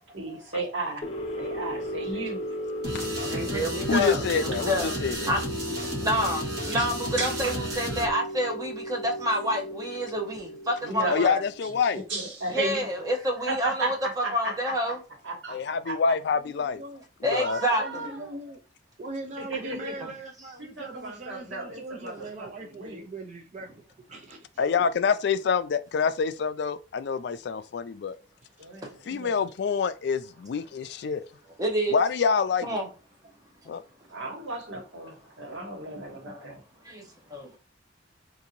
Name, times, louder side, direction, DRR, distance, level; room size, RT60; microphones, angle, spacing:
voice 1, 0.1-1.1 1.4-2.4 3.2-3.7 5.9-6.0 6.7-6.9 7.2-7.5 10.8-11.2 12.1-12.8 13.5-14.7 15.2-16.0 17.3-18.3 19.4-20.1 20.6-23.0 28.6-29.5 34.1-36.6, right 2 dB, 90° right, 1.4 m, -35 dB
sound 1, 1.0-11.9, equal, 35° left, 0.7 m, -36 dB
sound 2, 2.8-8.1, equal, 60° right, 1.1 m, -33 dB
voice 2, 3.3-5.0 5.2-5.4 6.0-11.4 12.5-15.0 17.2-17.8 28.8-28.9 31.6-32.0 32.6-32.9 36.8-37.6, equal, 20° right, 0.9 m, -28 dB
voice 3, 3.9-5.3 11.1-12.0 15.5-16.8 17.3-17.6 24.6-28.2 29.1-31.2 31.9-32.7 33.7-33.8, left 5 dB, 60° left, 0.3 m, -26 dB
voice 4, 16.3-17.0 17.7-18.6 19.0-23.7 24.1-24.7, right 2 dB, 40° right, 0.4 m, -40 dB
3.8 x 2.6 x 2.9 m
head